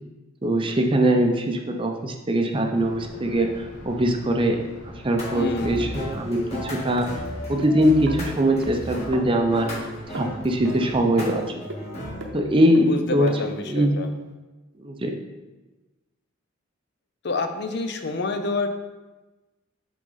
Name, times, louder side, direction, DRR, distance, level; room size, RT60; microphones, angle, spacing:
voice 1, 0.4-4.6 4.9-7.1 7.5-9.7 10.1-11.4 12.3-13.3 13.7-13.9 14.8-15.1, right 1 dB, 25° right, 3 dB, 0.5 m, -22 dB
Thunder, 2.7-11.5, equal, 75° left, 1.7 m, -43 dB
sound 1, 5.2-12.3, equal, 30° left, 1.7 m, -35 dB
voice 2, 5.3-5.8 12.7-14.1 17.2-18.7, left 3 dB, 55° left, 6 dB, 0.5 m, -28 dB
sound 2, 5.8-5.9 7.0-7.7 8.1-8.3 8.6-8.7 9.1-9.2 9.7-9.8 10.1-10.8 11.2-11.3 11.7-11.8 12.2-12.3 12.7-12.8 13.3-13.4 14.0-14.1, right 1 dB, 60° right, 0.8 m, -35 dB
7.8 x 3.8 x 3.9 m, 1.2 s
head